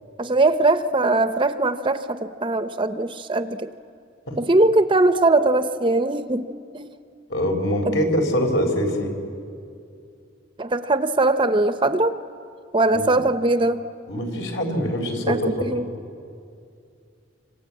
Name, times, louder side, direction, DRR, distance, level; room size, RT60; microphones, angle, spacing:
voice 1, 0.2-3.7 4.4-6.5 6.7-6.9 7.9-8.0 10.6-12.1 12.7-13.8 15.3-15.9, right 2 dB, 25° right, 10 dB, 0.7 m, -20 dB
voice 2, 7.3-9.1 12.9-13.2 14.1-15.7, equal, 65° left, 3 dB, 4.3 m, -24 dB
27.0 x 26.5 x 8.5 m, 2.4 s
head